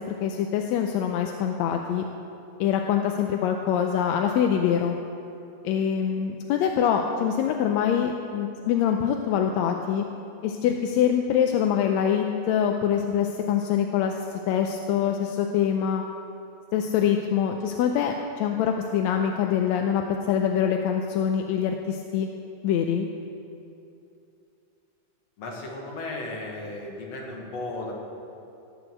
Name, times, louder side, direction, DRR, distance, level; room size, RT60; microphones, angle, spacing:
voice 1, 0.2-2.1 2.6-5.0 5.6-10.0 10.4-14.1 14.5-16.0 16.7-22.3 22.6-23.1, left 8 dB, 80° left, 4 dB, 1.8 m, -24 dB
voice 2, 25.4-27.9, left 2 dB, 60° left, -1 dB, 2.9 m, -35 dB
17.0 x 6.2 x 7.8 m, 2.7 s
omnidirectional pair, 3.4 m